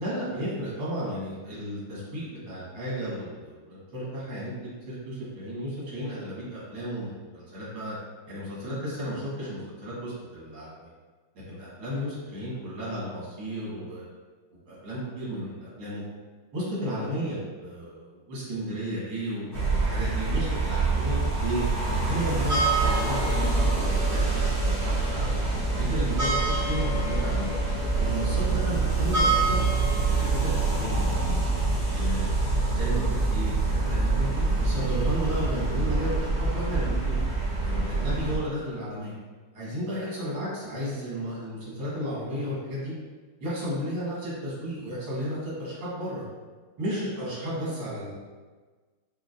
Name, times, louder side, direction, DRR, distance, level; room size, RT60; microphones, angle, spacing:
voice 1, 0.0-8.0 8.3-10.9 11.5-14.0 14.7-16.0 16.5-19.4 19.8-25.0 25.7-27.5 28.0-29.6 30.0-31.4 31.9-32.3 32.6-37.2 37.6-39.1 39.5-42.9 43.4-46.2 46.8-48.1, equal, 70° right, -8 dB, 2.2 m, -33 dB
sound 1, 19.5-38.4, right 3 dB, 35° right, 1.5 m, -25 dB
5.2 x 2.6 x 2.5 m, 1.4 s
omnidirectional pair, 2.1 m